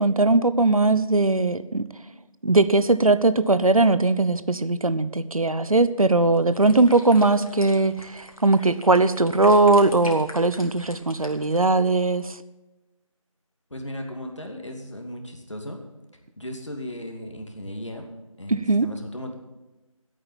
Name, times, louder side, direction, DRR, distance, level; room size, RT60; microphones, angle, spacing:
voice 1, 0.0-1.8 2.4-12.4 18.5-18.9, right 2 dB, 80° right, 14 dB, 0.9 m, -20 dB
sound 1, 6.3-11.9, left 1 dB, 80° left, 2.9 m, -44 dB
voice 2, 13.7-15.8 16.4-18.1 18.4-19.3, left 1 dB, 60° left, 3 dB, 2.6 m, -36 dB
11.5 x 8.7 x 8.9 m, 1.1 s
figure-of-eight pair, 180°, 18 cm